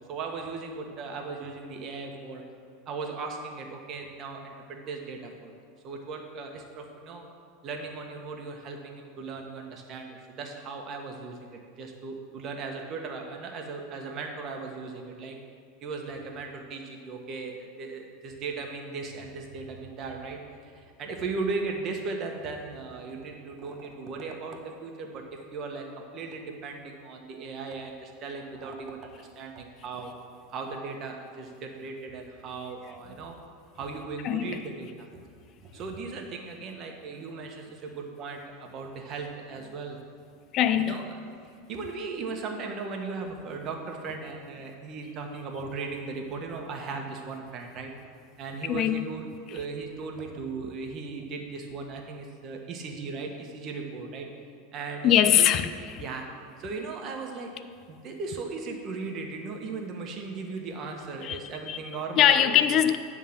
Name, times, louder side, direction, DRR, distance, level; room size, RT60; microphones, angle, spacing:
voice 1, 0.1-2.4 2.9-5.5 5.8-7.3 7.6-15.4 15.8-25.9 26.1-30.1 30.5-33.3 33.7-35.1 35.6-40.0 40.8-41.2 41.7-47.9 48.4-54.3 54.7-55.5 56.0-56.2 56.6-57.5 57.9-62.8, right 4 dB, 40° right, 2 dB, 1.1 m, -37 dB
voice 2, 34.2-34.6 40.5-41.0 48.7-49.0 49.5-49.6 55.0-56.0 61.2-61.8 62.2-63.0, left 10 dB, 40° left, 11 dB, 0.4 m, -22 dB
9.3 x 3.7 x 7.1 m, 2.2 s
supercardioid pair, 130°, 0 cm